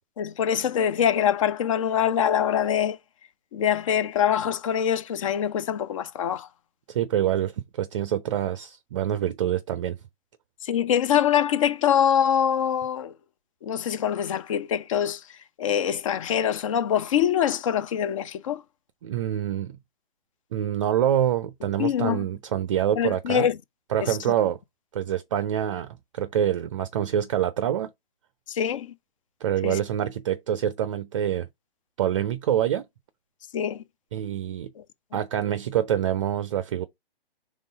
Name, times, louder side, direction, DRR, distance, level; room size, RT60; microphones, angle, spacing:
voice 1, 0.2-3.0 3.5-6.5 10.6-13.1 13.6-15.2 15.6-18.6 21.8-22.3 23.0-23.6 24.0-24.2 28.5-28.9 29.6-29.8 33.5-33.8 34.8-34.9, left 9 dB, 35° left, 0.6 m, -24 dB
voice 2, 6.9-10.0 19.0-19.7 20.5-23.5 23.9-24.6 24.9-27.9 29.4-31.5 32.0-32.9 34.1-34.7 35.1-36.9, right 10 dB, 30° right, 0.5 m, -26 dB
5.3 x 3.6 x 5.1 m
figure-of-eight pair, 130°, 30 cm